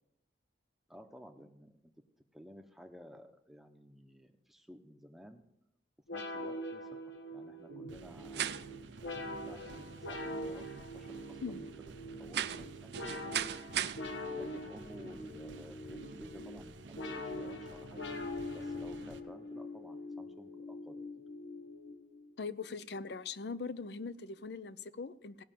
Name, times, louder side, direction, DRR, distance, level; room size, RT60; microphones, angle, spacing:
voice 1, 0.9-1.9 2.3-5.4 6.1-6.9 7.3-8.5 9.0-11.7 12.2-13.5 14.3-18.0 18.5-21.0, equal, ahead, 5 dB, 0.8 m, -54 dB
sound 1, 6.1-22.3, left 1 dB, 85° left, 1.2 m, -43 dB
sound 2, 7.7-19.2, right 3 dB, 90° right, 0.8 m, -51 dB
sound 3, 8.3-14.0, right 9 dB, 65° right, 0.5 m, -40 dB
voice 2, 22.4-25.4, left 4 dB, 65° left, 16 dB, 0.5 m, -41 dB
16.5 x 6.0 x 7.5 m, 0.80 s
head